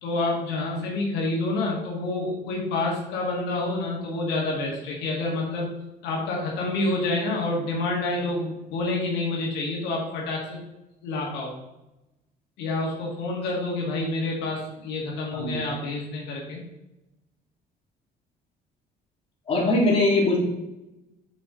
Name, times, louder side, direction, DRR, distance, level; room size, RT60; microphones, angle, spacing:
voice 1, 0.0-10.6 11.0-11.5 12.6-16.6 19.7-19.9, left 2 dB, 90° left, -1 dB, 1.7 m, -28 dB
voice 2, 19.5-20.4, left 2 dB, 35° left, -2 dB, 2.3 m, -21 dB
6.5 x 5.1 x 3.7 m, 0.94 s
cardioid pair, 110°, 17 cm